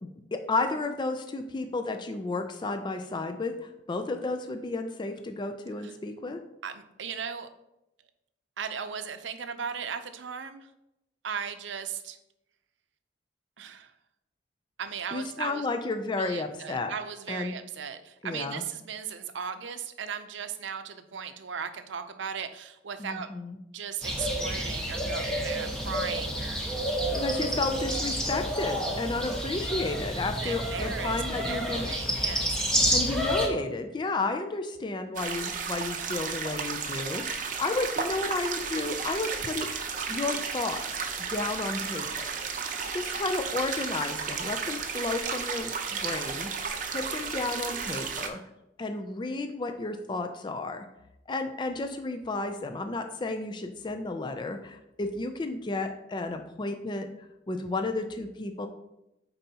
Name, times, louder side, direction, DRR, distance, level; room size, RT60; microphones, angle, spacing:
voice 1, 0.0-6.4 15.1-16.9 17.3-17.5 18.2-18.6 23.0-23.6 27.1-31.9 32.9-41.0 41.3-42.3 42.9-48.4 48.8-50.9 51.3-58.7, left 3 dB, 25° left, 7 dB, 0.4 m, -32 dB
voice 2, 6.6-7.5 8.6-10.7 11.2-12.2 13.6-13.9 14.8-15.7 16.1-23.3 23.7-26.6 30.4-32.6, right 7 dB, 85° right, 9 dB, 0.6 m, -37 dB
sound 1, 24.0-33.5, equal, 5° left, 1.0 m, -29 dB
sound 2, 35.1-48.3, right 6 dB, 45° right, 0.7 m, -33 dB
8.9 x 4.1 x 2.8 m, 0.87 s
head